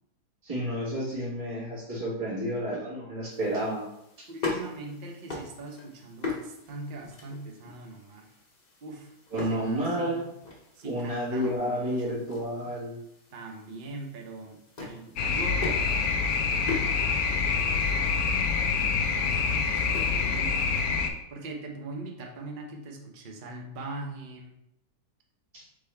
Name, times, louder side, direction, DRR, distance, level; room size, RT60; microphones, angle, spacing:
voice 1, 0.4-3.9 4.2-4.3 9.3-10.2 10.8-13.0 25.5-25.6, equal, 25° right, -7 dB, 1.5 m, -30 dB
sound 1, 3.3-20.9, left 3 dB, 30° left, 0.9 m, -41 dB
voice 2, 4.3-8.3 8.8-10.2 10.7-12.2 13.3-18.2 18.5-20.7 21.3-24.6, right 2 dB, 50° right, 2 dB, 0.6 m, -42 dB
sound 2, 15.2-21.1, left 5 dB, 70° left, 1.0 m, -26 dB
3.6 x 3.5 x 4.3 m, 0.79 s
omnidirectional pair, 1.7 m